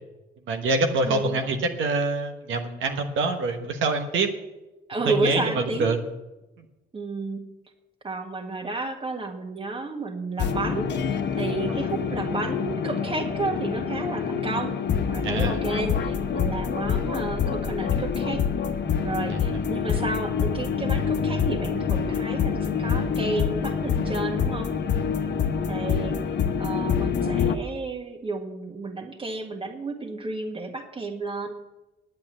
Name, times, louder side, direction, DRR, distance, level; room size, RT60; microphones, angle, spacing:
voice 1, 0.5-4.3 5.0-6.0 11.7-11.9 15.2-15.6 19.5-19.6, right 3 dB, 75° right, 4 dB, 1.3 m, -25 dB
voice 2, 1.0-1.4 4.9-5.9 6.9-7.4 8.0-14.8 15.1-18.5 19.0-24.7 25.7-26.2 26.6-31.5, right 3 dB, 25° right, 5 dB, 1.7 m, -31 dB
sound 1, 10.4-27.6, left 7 dB, 60° left, 1.0 m, -26 dB
10.5 x 8.7 x 7.4 m, 1.0 s
cardioid pair, 90°, 20 cm